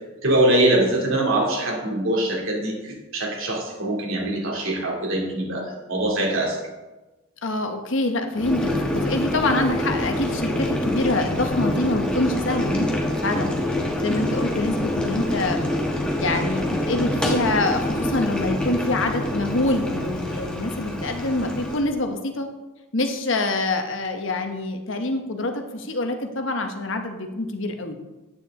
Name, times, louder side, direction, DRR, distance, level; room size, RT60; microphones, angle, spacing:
voice 1, 0.2-6.6, right 1 dB, 70° right, -1 dB, 2.8 m, -23 dB
voice 2, 7.4-13.6 14.0-15.6 16.2-22.5 22.9-28.0, left 2 dB, 60° left, 6 dB, 1.1 m, -25 dB
Boiling, 8.3-21.8, left 1 dB, 5° left, 1.3 m, -26 dB
9.9 x 9.0 x 3.7 m, 1.1 s
head